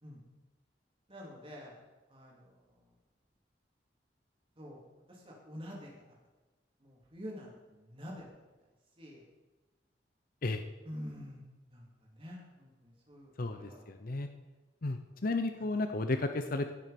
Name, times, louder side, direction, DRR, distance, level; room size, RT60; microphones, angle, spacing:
voice 1, 1.1-1.8 2.1-2.8 4.6-4.8 5.1-6.2 6.8-8.3 9.0-9.2 10.8-11.4 11.7-13.9, equal, 30° right, -2 dB, 3.2 m, -47 dB
voice 2, 13.4-14.3 14.8-16.7, left 2 dB, 55° left, 7 dB, 0.7 m, -33 dB
16.0 x 7.4 x 5.2 m, 1.2 s
head